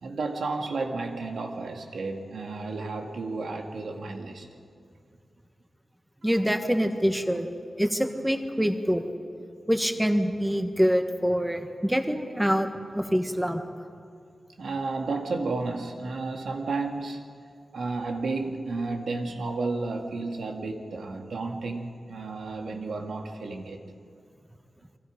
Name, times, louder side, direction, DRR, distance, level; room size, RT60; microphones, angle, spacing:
voice 1, 0.0-4.5 14.6-17.2 17.7-23.9, right 3 dB, 85° right, 3 dB, 2.1 m, -32 dB
voice 2, 6.2-7.5 7.8-9.0 9.7-12.7 12.9-13.6, equal, 5° right, 6 dB, 1.3 m, -25 dB
29.0 x 24.0 x 5.2 m, 2.3 s
wide cardioid pair, 175°, 0 cm